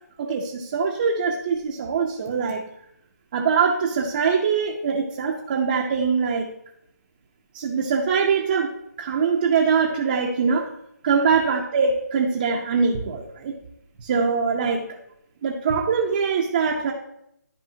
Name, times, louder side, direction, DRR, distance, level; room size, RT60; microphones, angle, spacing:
voice 1, 0.2-2.6 3.3-6.5 7.5-10.7 11.0-13.5 14.0-15.0 15.4-16.9, right 5 dB, 30° right, -1 dB, 0.9 m, -23 dB
13.5 x 4.7 x 2.8 m, 0.77 s
hypercardioid pair, 160°, 9 cm